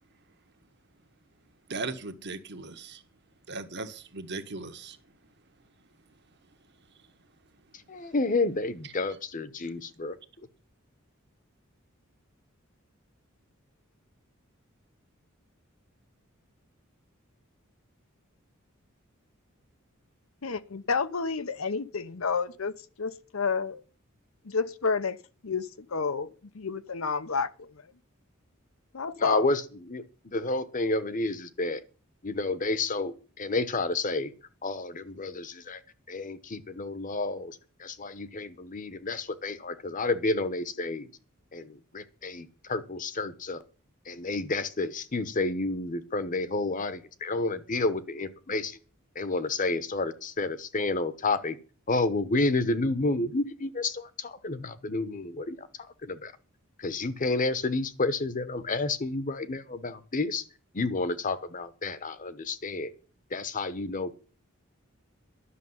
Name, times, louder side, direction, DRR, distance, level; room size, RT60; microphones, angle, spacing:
voice 1, 1.7-3.0 3.5-5.0, right 3 dB, 55° right, 1.4 m, -37 dB
voice 2, 7.9-10.2 29.2-31.8 32.2-34.3 34.6-35.8 36.1-41.1 41.5-43.6 44.1-48.8 49.1-51.6 51.9-55.7 56.0-56.3 56.8-60.4 60.7-62.9 63.3-64.2, left 3 dB, 40° left, 1.0 m, -30 dB
voice 3, 20.4-22.7 23.0-23.8 24.4-26.3 26.5-27.7 28.9-29.4, left 5 dB, 80° left, 0.9 m, -30 dB
11.5 x 6.7 x 9.6 m
head